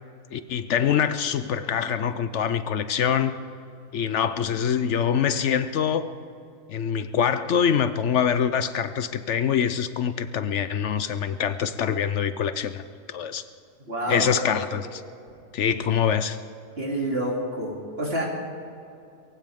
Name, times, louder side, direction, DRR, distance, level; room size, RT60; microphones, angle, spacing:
voice 1, 0.3-3.4 3.9-6.1 6.7-12.8 13.1-13.4 14.1-15.0 15.5-16.4, left 8 dB, 65° left, 12 dB, 0.8 m, -24 dB
voice 2, 13.9-14.7 16.8-18.3, equal, 40° right, -3 dB, 3.1 m, -28 dB
23.0 x 15.5 x 3.6 m, 2.6 s
omnidirectional pair, 1.5 m